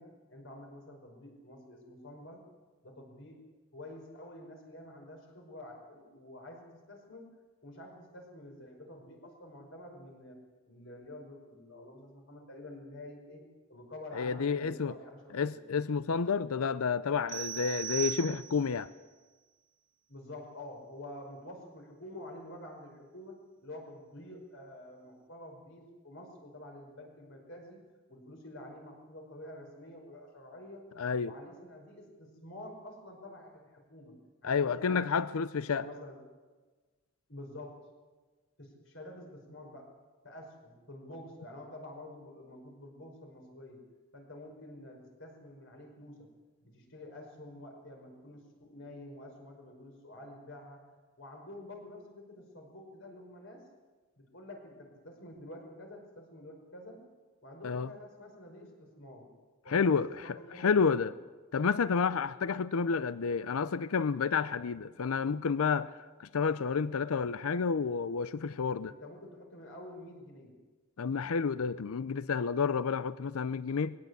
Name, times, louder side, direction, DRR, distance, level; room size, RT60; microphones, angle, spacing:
voice 1, 0.0-2.5 2.8-3.4 3.7-7.3 7.6-10.4 10.7-15.6 20.1-27.8 28.1-30.9 31.2-35.1 35.7-36.2 37.3-37.8 38.6-39.9 40.2-43.8 44.1-46.4 46.6-50.8 51.2-53.7 54.2-57.0 57.4-59.3 59.6-61.1 64.8-64.9 68.9-70.6, left 1 dB, 60° left, 5.3 m, -49 dB
voice 2, 14.1-14.9 15.3-18.9 31.0-31.3 34.4-35.9 57.6-57.9 59.7-61.1 61.5-68.9 71.0-74.0, left 5 dB, 85° left, 0.5 m, -30 dB
sound 1, 17.3-18.8, right 10 dB, 65° right, 2.0 m, -38 dB
21.0 x 17.0 x 8.2 m
head